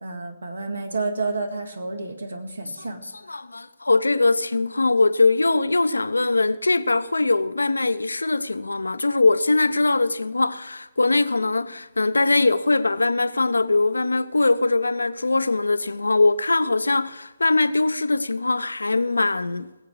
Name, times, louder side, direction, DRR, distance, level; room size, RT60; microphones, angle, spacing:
voice 1, 0.0-3.0, right 3 dB, 70° right, 1.9 m, -30 dB
voice 2, 3.3-19.7, left 3 dB, 75° left, 0.6 m, -21 dB
20.5 x 8.3 x 4.7 m
figure-of-eight pair, 130°, 0 cm